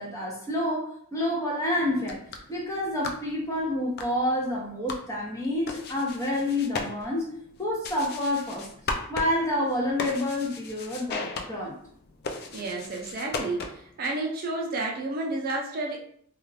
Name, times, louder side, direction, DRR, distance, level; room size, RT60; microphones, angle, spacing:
voice 1, 0.0-2.2 2.5-7.3 7.6-8.7 9.1-11.8, left 1 dB, 15° left, -4 dB, 0.7 m, -28 dB
sound 1, 1.9-14.0, left 3 dB, 45° left, 0.3 m, -38 dB
voice 2, 12.5-16.0, right 2 dB, 45° right, 0 dB, 0.5 m, -31 dB
2.4 x 2.4 x 3.2 m, 0.64 s
head